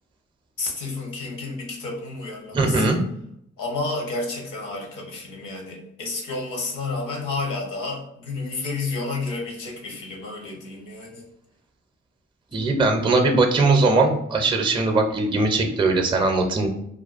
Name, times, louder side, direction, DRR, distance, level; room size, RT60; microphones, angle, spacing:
voice 1, 0.6-3.0 3.6-11.2, left 3 dB, 75° left, 0 dB, 0.8 m, -31 dB
voice 2, 2.5-3.0 12.5-16.7, right 3 dB, 15° right, 4 dB, 0.4 m, -20 dB
2.4 x 2.2 x 2.4 m, 0.74 s
supercardioid pair, 45°, 31 cm